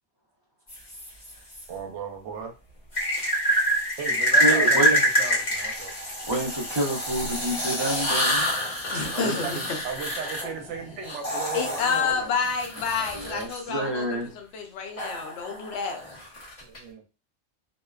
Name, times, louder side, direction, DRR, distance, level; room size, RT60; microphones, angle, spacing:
sound 1, 0.7-1.6 2.9-13.6 15.0-16.8, equal, 30° left, 0.9 m, -27 dB
voice 1, 1.1-2.5 4.0-4.8 5.2-5.9 8.4-8.5 8.9-12.1 16.6-17.0, right 6 dB, 80° right, 4 dB, 0.9 m, -36 dB
voice 2, 4.4-5.0 6.3-8.5 9.0-9.1 13.1-14.3, right 1 dB, 35° right, -2 dB, 0.5 m, -28 dB
voice 3, 8.9-9.6 11.5-14.1 14.3-16.0, left 5 dB, 75° left, 3 dB, 0.9 m, -29 dB
2.7 x 2.1 x 2.3 m, 0.31 s
omnidirectional pair, 1.2 m